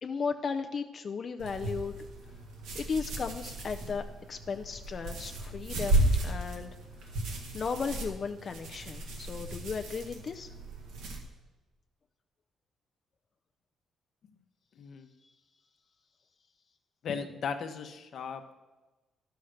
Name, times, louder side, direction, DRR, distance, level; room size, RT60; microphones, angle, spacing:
voice 1, 0.0-1.9 2.7-6.7 7.5-10.5 15.2-15.3, left 5 dB, 45° left, 6 dB, 0.4 m, -35 dB
sound 1, 1.4-11.2, right 1 dB, 90° right, 1.8 m, -34 dB
voice 2, 14.8-15.1 17.0-18.6, left 6 dB, 65° left, 7 dB, 0.9 m, -37 dB
11.5 x 5.7 x 6.4 m, 1.2 s
cardioid pair, 90°, 0 cm